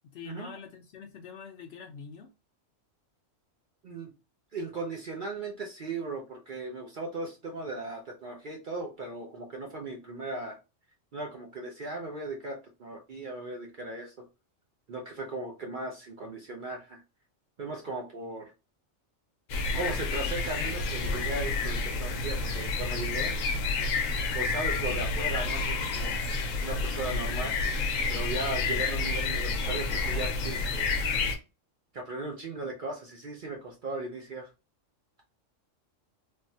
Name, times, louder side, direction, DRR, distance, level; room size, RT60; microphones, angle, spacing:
voice 1, 0.0-2.3, left 6 dB, 65° left, 0.7 m, -45 dB
voice 2, 4.5-10.6 11.1-14.1 14.9-17.0 17.6-18.5 19.7-23.3 24.3-26.2 26.6-27.5 28.1-30.9 31.9-34.5, right 2 dB, 55° right, 0.6 m, -37 dB
sound 1, 19.5-31.4, left 3 dB, 85° left, 1.0 m, -29 dB
3.4 x 2.1 x 2.6 m
omnidirectional pair, 1.3 m